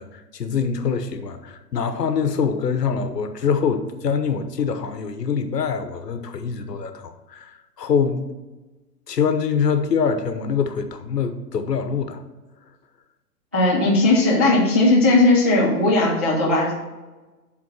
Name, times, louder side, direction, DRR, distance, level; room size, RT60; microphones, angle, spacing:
voice 1, 0.0-7.5 7.8-8.3 9.1-12.2, left 6 dB, 80° left, 8 dB, 1.0 m, -24 dB
voice 2, 13.5-16.7, left 2 dB, 10° right, -9 dB, 0.3 m, -17 dB
7.4 x 3.9 x 6.2 m, 1.2 s
hypercardioid pair, 135°, 48 cm